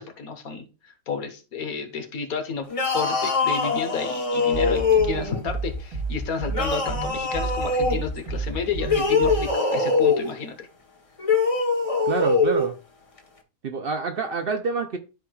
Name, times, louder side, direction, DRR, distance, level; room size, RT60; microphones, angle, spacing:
voice 1, 0.0-2.7 2.9-10.7, left 5 dB, 85° left, 1.6 m, -31 dB
sound 1, 2.7-5.4 6.5-8.0 8.8-10.3 11.2-12.7, left 4 dB, 25° left, 0.9 m, -23 dB
sound 2, 4.5-9.5, right 3 dB, 85° right, 2.0 m, -31 dB
voice 2, 12.1-12.8 13.6-15.0, right 5 dB, 55° right, 0.7 m, -27 dB
12.5 x 4.6 x 2.3 m
omnidirectional pair, 1.5 m